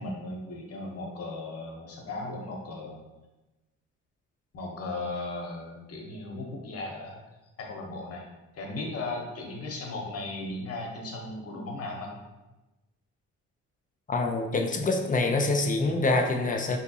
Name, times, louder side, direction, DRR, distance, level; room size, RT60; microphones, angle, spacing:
voice 1, 0.0-3.0 4.5-7.2 7.6-8.3 8.5-12.1, left 2 dB, 50° left, 0 dB, 0.8 m, -36 dB
voice 2, 14.1-16.8, left 2 dB, 30° left, 4 dB, 0.4 m, -25 dB
3.6 x 2.7 x 2.7 m, 1.0 s
cardioid pair, 90°, 30 cm